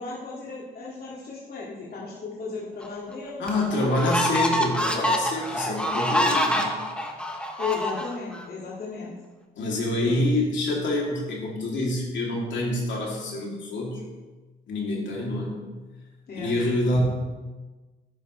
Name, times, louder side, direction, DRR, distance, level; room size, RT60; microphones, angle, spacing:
voice 1, 0.0-3.5 7.6-9.1 10.0-10.4 16.3-16.5, left 4 dB, 50° left, -6 dB, 2.3 m, -34 dB
sound 1, 2.8-2.9 3.5-8.4, equal, 5° left, 1.3 m, -26 dB
voice 2, 3.4-6.7 9.6-14.0 14.7-15.6 16.3-17.0, left 1 dB, 70° left, -2 dB, 3.0 m, -26 dB
11.0 x 9.9 x 3.3 m, 1.3 s
cardioid pair, 90°, 20 cm